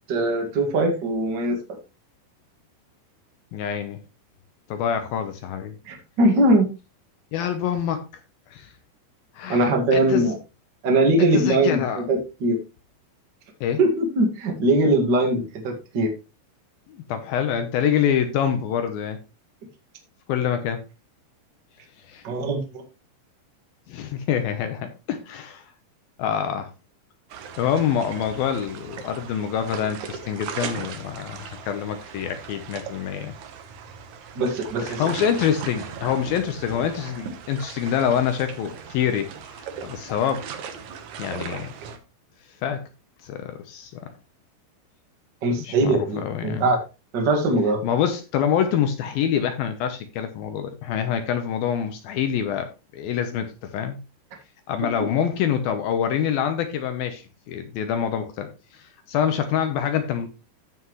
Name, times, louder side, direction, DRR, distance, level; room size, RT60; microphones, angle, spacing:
voice 1, 0.1-1.6 5.8-6.7 9.5-10.4 10.8-12.6 13.8-16.1 22.2-22.8 34.3-35.0 45.4-46.8 47.1-47.8, right 2 dB, 50° right, 3 dB, 1.3 m, -21 dB
voice 2, 3.5-4.0 4.7-5.7 7.3-8.0 8.5-8.7 9.3-10.3 11.2-12.1 13.6-13.8 16.9-19.2 20.3-20.8 22.1-22.2 23.9-25.6 26.2-26.7 27.6-33.3 34.8-40.5 41.2-41.7 42.6-42.8 43.2-44.1 45.6-46.7 47.8-54.0 54.7-60.3, left 8 dB, 80° left, 8 dB, 2.2 m, -26 dB
sound 1, 27.3-42.0, right 7 dB, 80° right, 1.6 m, -38 dB
15.0 x 5.9 x 3.1 m, 0.29 s
omnidirectional pair, 5.3 m